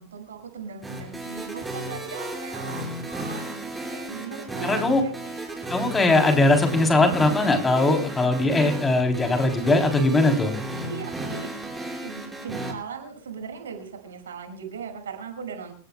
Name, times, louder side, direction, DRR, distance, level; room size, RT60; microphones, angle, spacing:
voice 1, 0.0-5.3 9.6-9.7 10.8-11.5 12.0-15.7, right 6 dB, 65° right, 5 dB, 6.1 m, -38 dB
sound 1, 0.8-12.7, right 1 dB, 10° right, 5.4 m, -34 dB
voice 2, 4.6-5.0 5.7-10.5, left 2 dB, 15° left, 4 dB, 3.5 m, -20 dB
28.5 x 17.0 x 2.3 m, 0.40 s
figure-of-eight pair, 90°, 0 cm